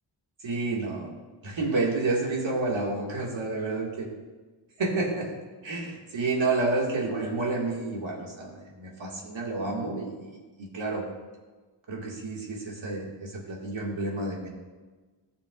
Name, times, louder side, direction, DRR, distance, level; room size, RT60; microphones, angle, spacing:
voice 1, 0.4-1.1 1.4-4.1 4.8-5.3 5.6-11.0 11.9-14.5, right 3 dB, 75° right, -2 dB, 2.0 m, -30 dB
15.0 x 6.8 x 2.4 m, 1.3 s
wide cardioid pair, 150°, 46 cm